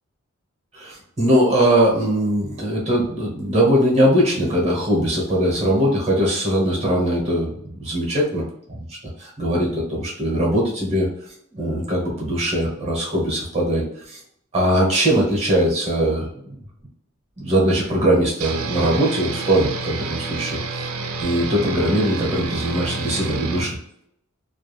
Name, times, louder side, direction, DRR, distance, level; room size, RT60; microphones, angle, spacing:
voice 1, 0.7-8.4 8.7-8.8 9.2-11.1 11.5-14.2 14.5-16.5 17.4-20.9 21.2-23.8, right 1 dB, 30° right, -3 dB, 0.9 m, -21 dB
sound 1, 18.4-23.7, right 4 dB, 80° right, 0.5 m, -29 dB
2.3 x 2.2 x 3.1 m, 0.72 s
head